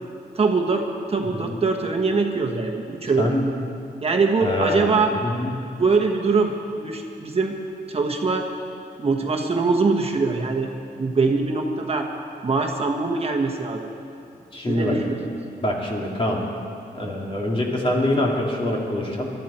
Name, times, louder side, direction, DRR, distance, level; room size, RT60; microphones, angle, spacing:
voice 1, 0.3-3.3 4.0-5.1 5.8-7.5 7.9-8.5 9.0-10.7 11.0-12.1 12.4-13.9 14.6-15.2, right 4 dB, 35° right, 2 dB, 1.3 m, -23 dB
voice 2, 1.2-1.6 3.2-3.4 4.4-4.9 5.2-5.5 14.5-15.0 15.6-16.4 16.9-19.3, left 1 dB, 35° left, -2 dB, 2.7 m, -24 dB
21.5 x 12.5 x 4.4 m, 2.6 s
wide cardioid pair, 105°, 17 cm